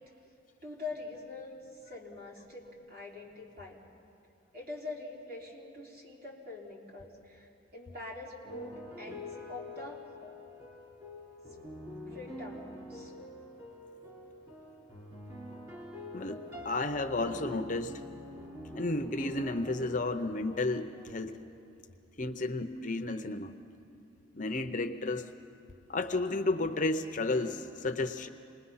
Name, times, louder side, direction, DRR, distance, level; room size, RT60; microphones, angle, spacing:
voice 1, 0.6-1.6 1.8-3.8 4.5-10.0 12.1-13.1, left 3 dB, 45° right, -3 dB, 3.5 m, -44 dB
sound 1, 8.4-21.1, left 1 dB, 20° right, 4.2 m, -45 dB
voice 2, 16.1-18.1 18.7-21.4 22.2-23.6 24.3-25.2 25.9-28.3, left 2 dB, 40° left, 8 dB, 0.7 m, -32 dB
27.5 x 20.5 x 5.7 m, 2.6 s
head